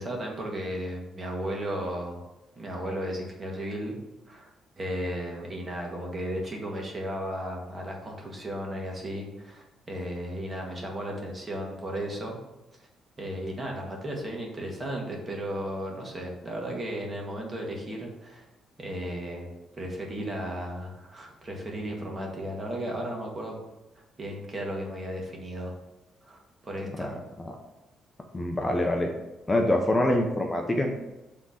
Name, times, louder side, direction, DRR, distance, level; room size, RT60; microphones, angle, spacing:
voice 1, 0.0-2.2 2.6-4.0 4.3-4.5 4.8-12.4 12.8-12.9 13.2-18.4 18.8-23.6 24.2-25.7 26.2-27.2, equal, 30° right, 0 dB, 1.9 m, -35 dB
voice 2, 28.3-29.1 29.5-30.9, left 1 dB, 15° left, 2 dB, 0.9 m, -24 dB
6.2 x 3.8 x 5.8 m, 0.98 s
cardioid pair, 90°, 0 cm